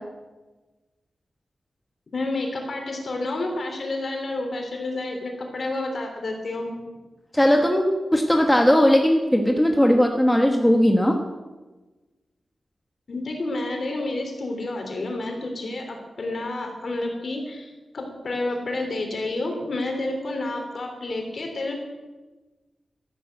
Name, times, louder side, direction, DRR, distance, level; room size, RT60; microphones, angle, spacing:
voice 1, 2.1-6.7 13.1-21.7, left 2 dB, 50° left, 3 dB, 3.5 m, -30 dB
voice 2, 7.3-11.2, equal, 5° left, 3 dB, 1.1 m, -18 dB
13.0 x 11.5 x 8.0 m, 1.2 s
wide cardioid pair, 175°, 0 cm